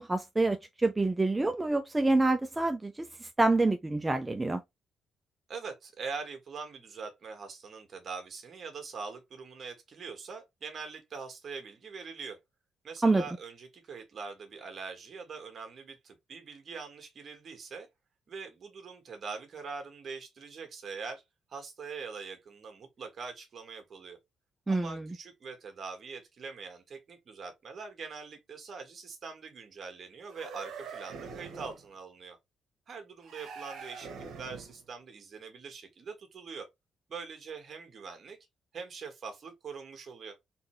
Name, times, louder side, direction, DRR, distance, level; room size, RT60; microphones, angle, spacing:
voice 1, 0.0-4.6 13.0-13.2 24.7-25.1, right 2 dB, 15° right, 0.6 m, -27 dB
voice 2, 5.5-12.4 12.8-17.9 18.3-21.2 21.5-24.2 24.7-32.4 32.9-34.1 34.4-36.7 37.1-38.4 38.7-40.4, right 5 dB, 50° right, 1.6 m, -43 dB
sound 1, 30.2-31.9 33.2-34.8, right 5 dB, 75° right, 1.2 m, -44 dB
4.2 x 3.3 x 3.2 m
cardioid pair, 90°, 0 cm